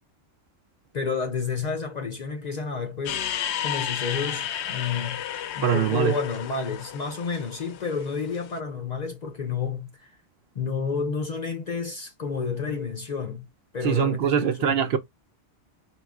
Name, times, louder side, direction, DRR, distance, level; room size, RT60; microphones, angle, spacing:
voice 1, 0.9-3.4 3.6-5.2 5.5-10.1 10.6-13.5 13.7-14.8, left 5 dB, 50° left, 0.5 m, -30 dB
sound 1, 3.1-8.5, left 10 dB, 75° left, 0.8 m, -32 dB
voice 2, 5.6-6.2 13.8-15.0, right 8 dB, 70° right, 0.8 m, -22 dB
4.6 x 3.0 x 2.3 m
omnidirectional pair, 1.2 m